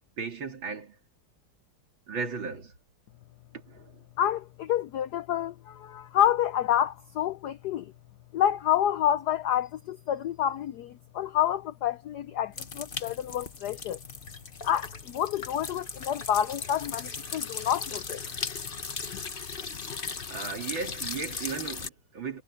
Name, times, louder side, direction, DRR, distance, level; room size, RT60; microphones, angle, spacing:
voice 1, 0.2-1.0 2.1-2.7 3.5-3.9 20.3-22.4, right 5 dB, 60° right, 3.6 m, -36 dB
voice 2, 4.2-7.9 8.3-14.0 14.7-18.2, left 10 dB, 90° left, 0.8 m, -28 dB
sound 1, 12.5-21.9, left 5 dB, 35° left, 1.0 m, -37 dB
omnidirectional pair, 2.4 m